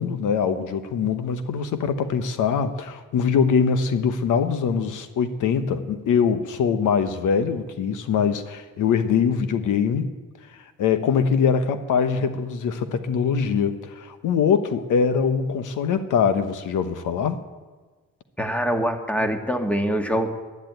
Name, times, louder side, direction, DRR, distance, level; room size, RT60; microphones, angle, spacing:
voice 1, 0.0-10.1 10.5-17.4, left 6 dB, 80° left, 10 dB, 1.0 m, -23 dB
voice 2, 18.4-20.3, equal, 5° left, 5 dB, 1.5 m, -24 dB
11.0 x 10.5 x 9.0 m, 1.4 s
cardioid pair, 85°, 30 cm